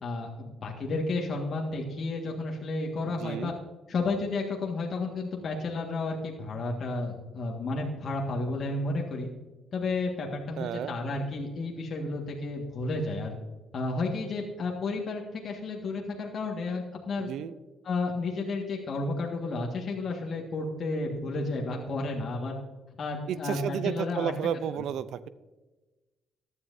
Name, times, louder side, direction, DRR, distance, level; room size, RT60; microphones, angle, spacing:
voice 1, 0.0-3.5 3.9-9.3 9.7-13.4 13.7-17.3 17.8-22.6 23.0-24.3, left 3 dB, 55° left, -1 dB, 1.8 m, -32 dB
voice 2, 3.0-3.6 10.6-11.0 17.2-17.5 23.3-25.3, right 9 dB, 75° right, 15 dB, 0.6 m, -32 dB
14.5 x 10.5 x 2.7 m, 1.2 s
cardioid pair, 80°, 0 cm